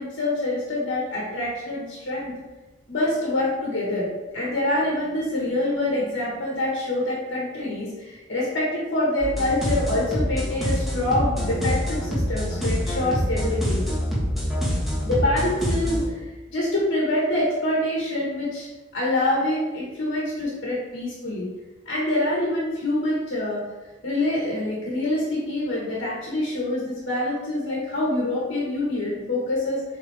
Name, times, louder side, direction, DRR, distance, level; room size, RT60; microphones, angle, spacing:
voice 1, 0.0-2.3 2.9-4.1 4.3-13.8 15.0-18.7 18.9-21.5 21.8-23.6 24.0-29.8, left 1 dB, 60° left, -5 dB, 1.5 m, -26 dB
sound 1, 9.2-16.1, equal, ahead, 1.6 m, -26 dB
7.2 x 3.9 x 3.4 m, 1.2 s
head